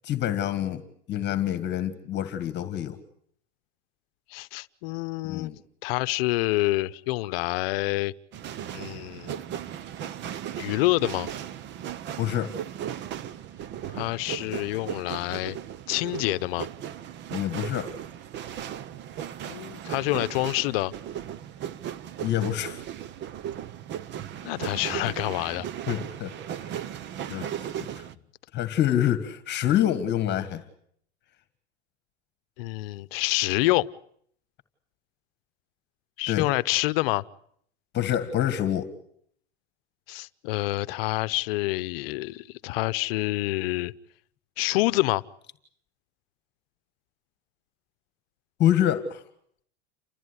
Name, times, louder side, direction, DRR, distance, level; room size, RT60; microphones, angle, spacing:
voice 1, 0.0-0.8 1.1-3.0 5.2-5.6 12.2-12.5 17.3-17.9 22.2-22.8 25.9-26.3 27.3-27.5 28.0-28.1 28.5-30.6 36.3-36.5 37.9-38.9 48.6-49.2, left 11 dB, 30° left, 11 dB, 1.8 m, -26 dB
voice 2, 4.3-5.5 5.8-8.1 8.7-9.4 10.6-11.3 13.9-15.6 15.9-16.7 19.5-20.9 24.4-25.6 32.6-33.9 36.2-37.2 40.1-43.9 44.6-45.2, left 20 dB, 60° left, 16 dB, 0.9 m, -27 dB
sound 1, 8.3-28.2, right 10 dB, 35° right, 0.9 m, -37 dB
29.0 x 14.0 x 9.8 m, 0.67 s
supercardioid pair, 135°, 33 cm